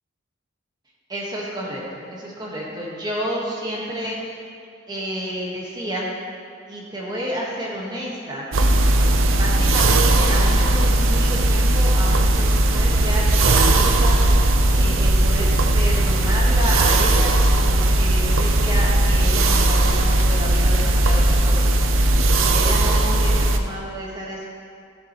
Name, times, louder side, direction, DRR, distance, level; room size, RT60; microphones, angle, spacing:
voice 1, 1.1-4.4 4.9-6.1 6.7-8.4 9.2-14.2 14.7-21.8 22.2-24.5, equal, 20° right, -4 dB, 1.3 m, -30 dB
sound 1, 8.5-23.6, right 1 dB, 75° right, 0.6 m, -17 dB
14.0 x 7.2 x 3.0 m, 2.4 s
head